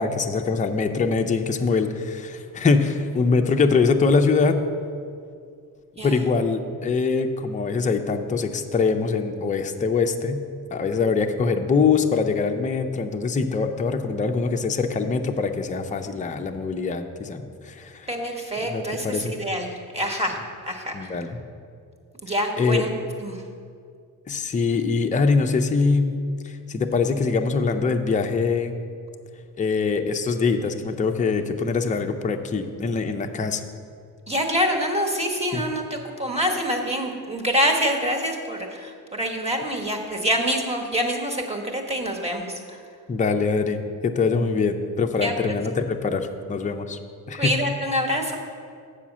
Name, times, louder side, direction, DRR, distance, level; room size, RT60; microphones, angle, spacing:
voice 1, 0.0-4.6 6.0-10.4 10.7-18.0 18.6-19.3 20.9-21.4 22.6-22.8 24.3-26.2 26.4-28.7 29.6-33.6 35.5-35.6 43.1-43.8 44.2-47.0 47.3-47.5, left 4 dB, 20° left, 5 dB, 0.5 m, -23 dB
voice 2, 18.1-20.4 20.7-21.1 22.2-22.9 23.2-23.4 34.3-42.8 45.2-45.3 47.4-48.4, equal, 15° right, 2 dB, 1.1 m, -26 dB
7.3 x 5.0 x 7.2 m, 2.3 s
cardioid pair, 100°, 38 cm